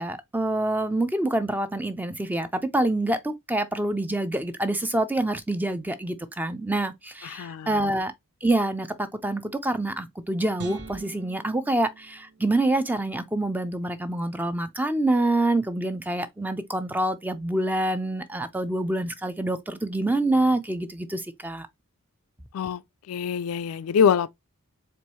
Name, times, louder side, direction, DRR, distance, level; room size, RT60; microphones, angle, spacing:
voice 1, 0.0-8.1 8.4-21.7, right 1 dB, 10° right, 0.4 m, -26 dB
voice 2, 7.2-7.9 22.5-22.8 23.1-24.3, left 7 dB, 70° left, 0.3 m, -24 dB
sound 1, 10.6-12.9, right 4 dB, 50° right, 0.9 m, -43 dB
4.5 x 3.0 x 3.0 m
head